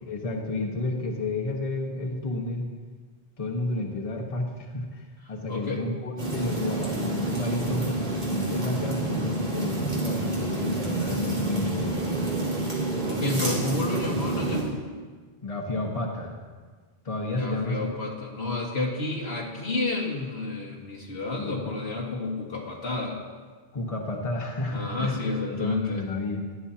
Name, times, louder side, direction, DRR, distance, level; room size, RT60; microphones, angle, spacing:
voice 1, 0.1-2.7 3.4-12.2 15.4-16.4 17.0-17.9 21.3-21.6 23.7-25.2 25.5-26.5, left 2 dB, 35° left, -1 dB, 1.3 m, -31 dB
voice 2, 5.5-5.8 13.1-14.7 17.3-23.2 24.7-26.0, left 2 dB, 90° left, -2 dB, 2.0 m, -30 dB
sound 1, 6.2-14.6, right 2 dB, 60° right, 3.1 m, -28 dB
16.0 x 11.0 x 2.8 m, 1.5 s
omnidirectional pair, 1.0 m